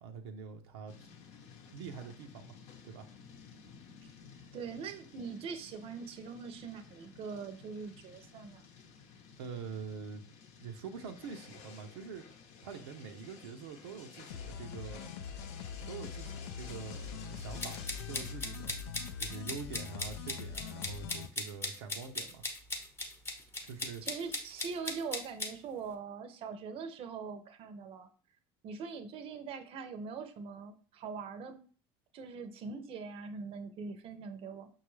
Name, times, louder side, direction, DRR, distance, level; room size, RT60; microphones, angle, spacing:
voice 1, 0.0-1.1 1.7-2.6 2.8-3.1 9.4-10.2 10.6-12.3 12.6-15.1 15.9-18.7 19.2-22.5 23.6-24.0, right 6 dB, 90° right, 4 dB, 0.5 m, -45 dB
sound 1, 0.9-18.4, left 6 dB, 65° left, 0.7 m, -54 dB
voice 2, 4.5-8.7 24.0-28.1 28.6-31.6 32.1-34.7, right 5 dB, 50° right, 8 dB, 0.6 m, -42 dB
sound 2, 14.3-21.3, left 6 dB, 85° left, 0.4 m, -43 dB
sound 3, 17.6-25.5, left 2 dB, 20° left, 0.8 m, -38 dB
5.7 x 2.3 x 3.1 m, 0.42 s
supercardioid pair, 90°, 13 cm